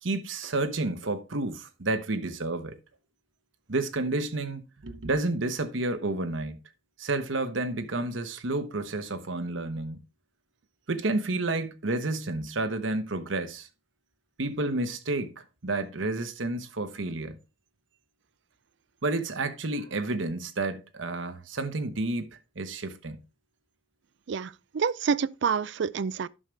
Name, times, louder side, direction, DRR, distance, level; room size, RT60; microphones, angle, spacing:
voice 1, 0.0-2.8 3.7-6.6 7.0-10.0 10.9-13.7 14.4-15.3 15.6-17.4 19.0-23.2, right 2 dB, 80° right, 1.1 m, -30 dB
voice 2, 24.3-26.3, right 6 dB, 65° right, 0.4 m, -28 dB
11.0 x 6.6 x 3.3 m
head